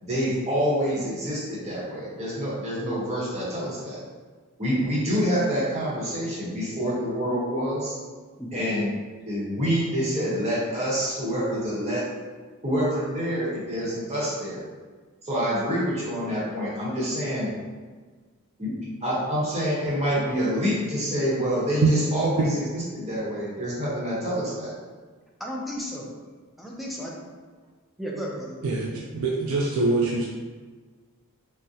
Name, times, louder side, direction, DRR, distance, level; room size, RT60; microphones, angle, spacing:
voice 1, 0.0-4.0 4.6-8.0 8.5-8.9 9.3-12.1 12.6-14.6 15.2-17.5 18.6-18.7 19.0-24.7, equal, 30° right, -7 dB, 0.9 m, -27 dB
voice 2, 8.4-8.7 25.4-26.1 26.6-27.1 28.0-28.6, equal, ahead, -3 dB, 0.3 m, -34 dB
voice 3, 28.6-30.3, right 3 dB, 75° right, -3 dB, 0.4 m, -23 dB
3.6 x 2.1 x 2.7 m, 1.4 s
head